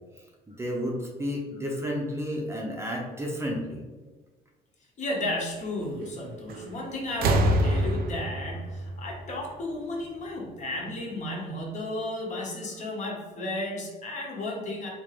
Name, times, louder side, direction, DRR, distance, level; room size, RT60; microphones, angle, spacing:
voice 1, 0.6-3.8, equal, 15° right, -1 dB, 0.6 m, -31 dB
voice 2, 5.0-14.9, left 1 dB, 45° left, -1 dB, 0.9 m, -33 dB
sound 1, 6.5-6.8 7.1-9.9 11.0-11.1, right 1 dB, 65° right, 0.5 m, -26 dB
3.7 x 2.5 x 3.2 m, 1.3 s
cardioid pair, 110°, 17 cm